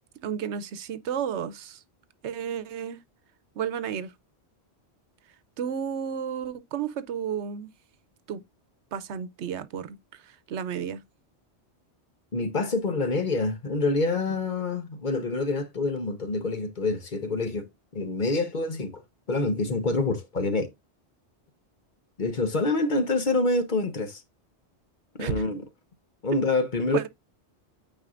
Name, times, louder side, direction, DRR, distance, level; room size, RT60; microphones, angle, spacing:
voice 1, 0.2-1.8 2.2-3.0 3.6-4.1 5.6-7.7 8.3-8.4 8.9-11.0 25.2-25.4 26.9-27.1, right 8 dB, 85° right, 1.0 m, -32 dB
voice 2, 12.3-19.0 19.3-20.7 22.2-24.2 25.2-25.6 26.2-27.0, left 3 dB, 45° left, 1.1 m, -26 dB
9.0 x 4.2 x 2.5 m
omnidirectional pair, 1.1 m